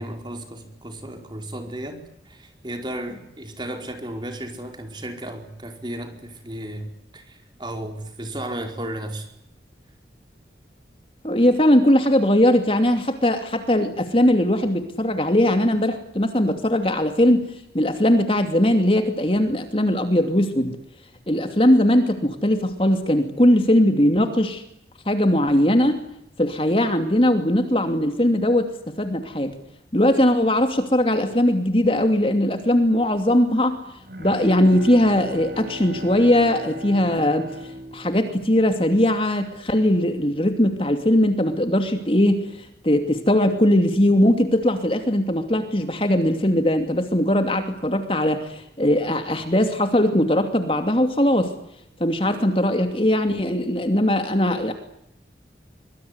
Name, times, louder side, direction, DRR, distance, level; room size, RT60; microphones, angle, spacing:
voice 1, 0.0-6.9 7.1-9.3, right 1 dB, 25° right, 5 dB, 4.8 m, -34 dB
voice 2, 11.2-17.5 17.7-20.8 21.3-24.6 25.1-26.0 26.4-28.7 29.0-29.5 29.9-33.8 34.2-37.5 37.9-51.5 52.0-54.7, left 1 dB, 30° left, 7 dB, 2.8 m, -20 dB
Bowed string instrument, 33.7-39.2, equal, 60° right, 7.0 m, -37 dB
25.0 x 24.0 x 9.8 m, 0.75 s
head